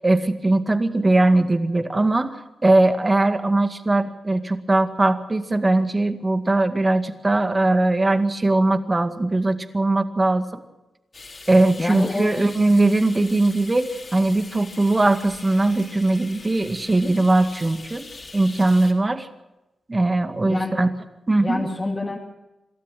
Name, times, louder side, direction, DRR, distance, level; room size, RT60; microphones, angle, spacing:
voice 1, 0.0-10.6 11.5-19.3 19.9-20.9 21.3-21.7, right 2 dB, 25° right, 8 dB, 2.0 m, -20 dB
sound 1, 11.1-18.9, left 3 dB, 45° left, 3.9 m, -42 dB
voice 2, 11.8-12.5 20.4-20.9 21.4-22.2, left 2 dB, 30° left, -1 dB, 2.5 m, -27 dB
26.5 x 13.0 x 7.6 m, 0.98 s
cardioid pair, 70°, 0 cm